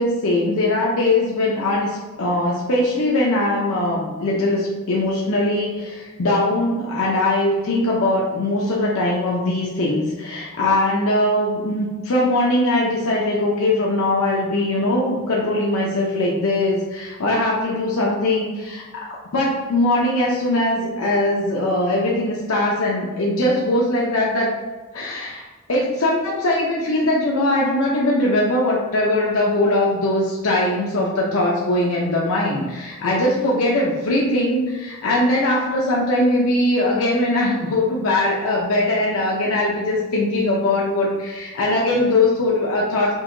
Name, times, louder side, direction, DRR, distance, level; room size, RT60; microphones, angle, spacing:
voice 1, 0.0-24.5 24.9-25.4 25.7-43.1, left 1 dB, 65° left, -3 dB, 0.6 m, -21 dB
5.3 x 2.8 x 2.6 m, 1.4 s
head